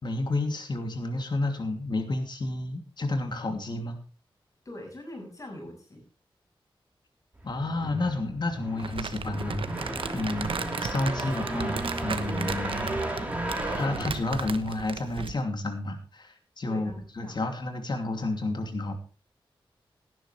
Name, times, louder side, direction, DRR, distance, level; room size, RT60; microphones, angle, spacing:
voice 1, 0.0-4.0 7.4-9.6 10.1-10.5 10.8-12.9 13.7-16.9 17.2-19.0, left 2 dB, 55° left, 5 dB, 2.8 m, -30 dB
voice 2, 4.6-6.0 10.4-10.7 16.6-17.4, left 1 dB, 35° left, 1 dB, 6.9 m, -43 dB
sound 1, 7.4-15.0, right 1 dB, 15° right, 3.7 m, -34 dB
Crumpling crinkling, 8.8-15.4, right 5 dB, 70° right, 1.1 m, -36 dB
17.5 x 11.0 x 3.3 m, 0.35 s
wide cardioid pair, 120°, 9 cm